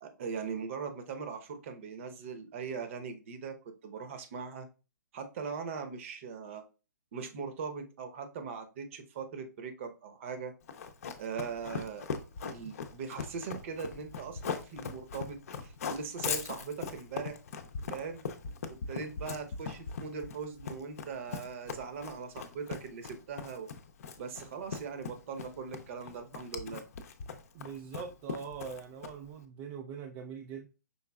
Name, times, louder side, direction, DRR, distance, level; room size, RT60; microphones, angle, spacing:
voice 1, 0.0-3.6 3.8-4.7 5.1-6.6 7.1-10.5 11.2-12.0 12.4-17.4 17.9-18.2 18.7-23.7 24.2-26.8, right 5 dB, 40° right, 7 dB, 0.9 m, -40 dB
Run, 10.7-29.3, left 6 dB, 50° left, 0.7 m, -40 dB
voice 2, 27.5-30.7, right 6 dB, 25° right, 3 dB, 0.4 m, -42 dB
5.6 x 3.8 x 2.3 m, 0.33 s
figure-of-eight pair, 125°, 10 cm